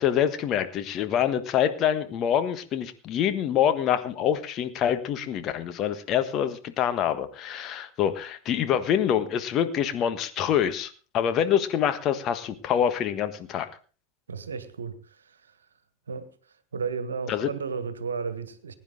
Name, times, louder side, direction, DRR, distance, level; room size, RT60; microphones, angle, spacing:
voice 1, 0.0-13.7 17.3-17.5, left 9 dB, 40° left, 1.4 m, -26 dB
voice 2, 14.3-15.6 16.1-16.3 16.7-18.7, right 5 dB, 75° right, 1.4 m, -33 dB
20.5 x 10.0 x 3.8 m
figure-of-eight pair, 80°, 0 cm